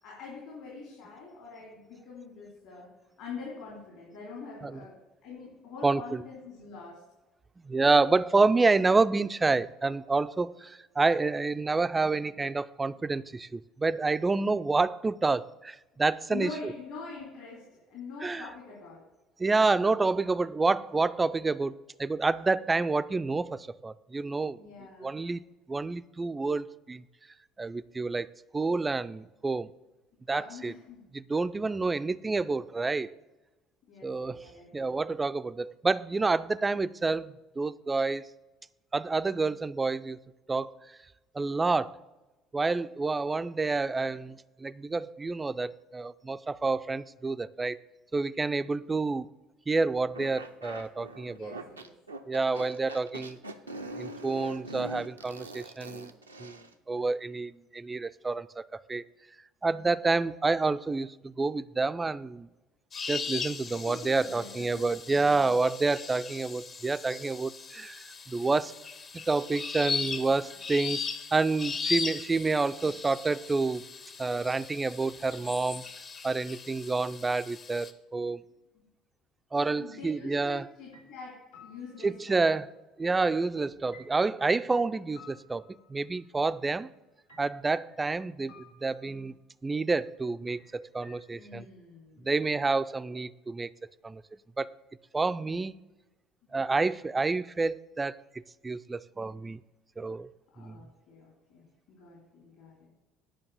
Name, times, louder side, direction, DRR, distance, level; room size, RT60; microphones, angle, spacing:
voice 1, 0.0-2.9 3.2-4.9 5.2-7.0 16.3-19.0 24.5-25.3 30.3-31.1 31.9-32.0 33.9-34.9 51.3-51.9 63.8-64.8 65.4-65.6 78.7-78.8 79.5-82.4 91.3-92.3 100.5-102.9, left 4 dB, 60° left, 2.9 m, -44 dB
voice 2, 5.8-6.2 7.6-16.7 18.2-18.5 19.4-24.6 25.0-25.4 25.7-27.0 27.6-29.7 30.3-30.7 31.1-33.1 34.0-38.3 38.9-40.2 40.5-41.0 41.3-42.0 42.5-47.8 48.1-49.3 49.7-51.5 52.3-53.4 53.9-56.1 56.4-56.6 56.9-58.6 58.9-59.0 59.6-62.5 63.0-68.7 69.1-71.0 71.3-73.8 74.2-75.9 76.2-78.4 79.5-80.6 82.0-82.7 83.0-85.6 85.9-86.9 87.4-91.7 92.2-93.7 94.0-94.2 94.6-94.8 95.1-95.8 96.5-99.6 100.0-100.3 100.6-100.8, right 3 dB, 20° right, 0.4 m, -28 dB
sound 1, 50.1-56.7, right 2 dB, 85° right, 0.5 m, -42 dB
sound 2, 62.9-77.9, left 5 dB, 35° left, 0.8 m, -38 dB
sound 3, 80.3-80.6 80.9-82.3 83.9-86.2 87.3-88.1 88.5-89.3 90.5-91.6, left 4 dB, 75° left, 2.1 m, -56 dB
9.5 x 5.1 x 6.9 m
figure-of-eight pair, 60°, 0 cm